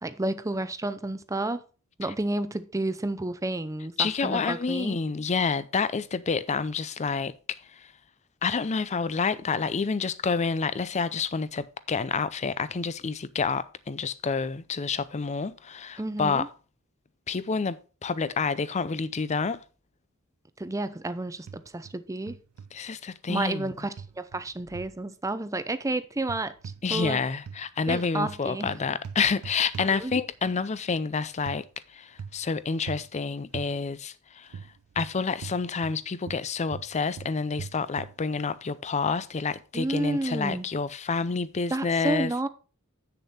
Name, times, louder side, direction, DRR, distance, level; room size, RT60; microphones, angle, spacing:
voice 1, 0.0-1.6 2.0-5.0 16.0-16.5 20.6-22.4 23.3-26.5 26.9-27.2 27.9-28.7 29.8-30.1 39.7-40.7 41.7-42.5, right 2 dB, 15° right, 0.6 m, -31 dB
voice 2, 4.0-7.9 8.4-16.5 17.3-19.6 22.7-23.7 26.8-34.6 35.0-42.3, left 5 dB, 30° left, 0.5 m, -29 dB
sound 1, 21.5-22.0 22.3-22.7 24.0-25.0 26.2-27.2 27.4-30.5 31.5-31.6 32.2-32.5 32.9-33.1 33.5-33.7 34.5-36.0 36.2-38.2, right 6 dB, 75° right, 0.3 m, -41 dB
8.2 x 6.8 x 4.2 m
head